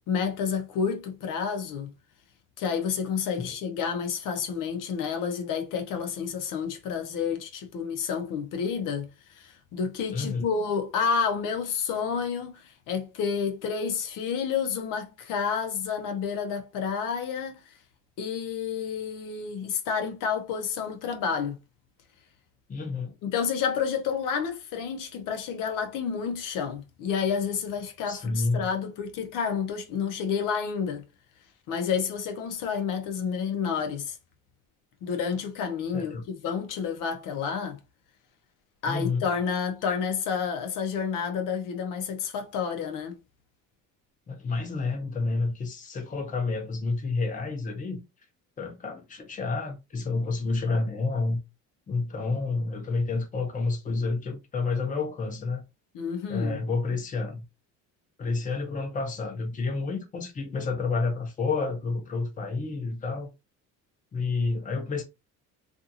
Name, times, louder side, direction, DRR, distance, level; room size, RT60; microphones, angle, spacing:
voice 1, 0.0-1.9 2.6-17.7 18.2-21.6 23.2-31.1 31.7-34.2 35.0-37.8 38.8-43.2 55.9-56.6, left 6 dB, 80° left, 0.7 m, -30 dB
voice 2, 10.1-10.5 22.7-23.1 28.1-28.7 35.9-36.2 38.8-39.3 44.3-48.0 48.6-51.4 51.9-55.6 56.3-57.4 58.2-63.3 64.1-65.0, left 3 dB, 25° left, 0.7 m, -29 dB
2.6 x 2.4 x 2.7 m
cardioid pair, 130°, 32 cm